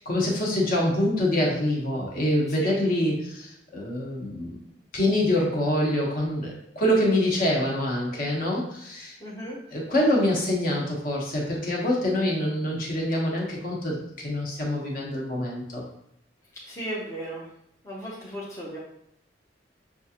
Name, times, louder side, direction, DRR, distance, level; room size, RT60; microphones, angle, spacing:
voice 1, 0.1-4.6 4.9-9.2 9.7-15.8, left 1 dB, 50° left, -2 dB, 1.1 m, -25 dB
voice 2, 9.2-9.6 16.6-17.4 17.8-18.8, right 1 dB, 15° left, -6 dB, 0.6 m, -35 dB
6.1 x 2.4 x 2.9 m, 0.75 s
head